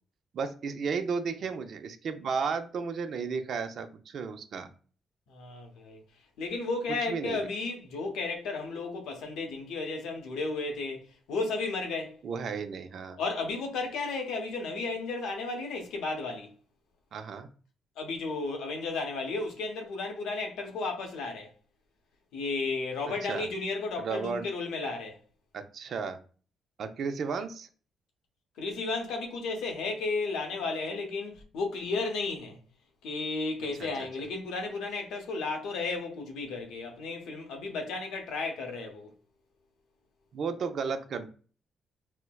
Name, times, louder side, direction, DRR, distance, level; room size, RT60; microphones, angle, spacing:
voice 1, 0.3-4.7 7.1-7.4 12.2-13.2 17.1-17.5 23.2-23.5 24.0-24.5 25.5-26.2 26.8-27.7 33.8-33.9 40.3-41.3, right 5 dB, 60° right, 0.5 m, -33 dB
voice 2, 5.3-6.0 6.4-12.2 13.2-16.5 18.0-21.5 22.3-25.2 28.6-32.6 33.0-39.1, left 3 dB, 85° left, 0.8 m, -33 dB
4.3 x 2.1 x 2.2 m
cardioid pair, 90°, 0 cm